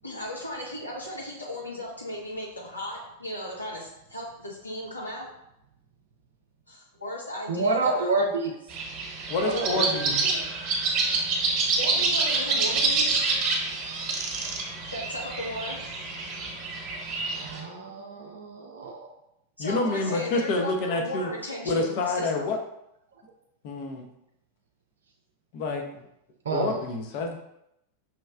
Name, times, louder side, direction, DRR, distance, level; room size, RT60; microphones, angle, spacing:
voice 1, 0.0-5.3 6.7-8.1 10.2-10.4 11.8-13.2 14.9-15.8 19.6-22.5, equal, 85° left, -4 dB, 1.2 m, -36 dB
voice 2, 7.5-8.6 9.4-10.2 17.4-19.1 26.4-26.8, right 3 dB, 65° right, 1 dB, 0.4 m, -28 dB
sound 1, 8.7-17.6, right 3 dB, 35° right, 1.1 m, -27 dB
voice 3, 9.3-10.1 19.6-21.3 21.6-22.6 23.6-24.1 25.5-26.0 26.5-27.4, left 3 dB, 45° left, 2 dB, 0.7 m, -28 dB
5.7 x 3.1 x 2.3 m, 0.80 s
figure-of-eight pair, 90°, 0 cm